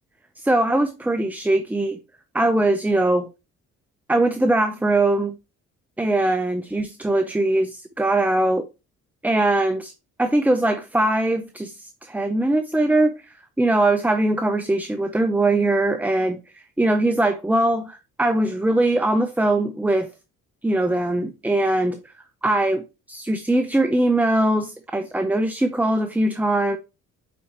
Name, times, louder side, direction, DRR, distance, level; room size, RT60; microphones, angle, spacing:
voice 1, 0.4-2.0 2.3-3.3 4.1-5.3 6.0-8.6 9.2-9.9 10.2-20.1 20.6-22.1 22.4-26.8, right 1 dB, 5° right, 0.6 m, -21 dB
8.5 x 4.2 x 2.9 m
cardioid pair, 90°, 30 cm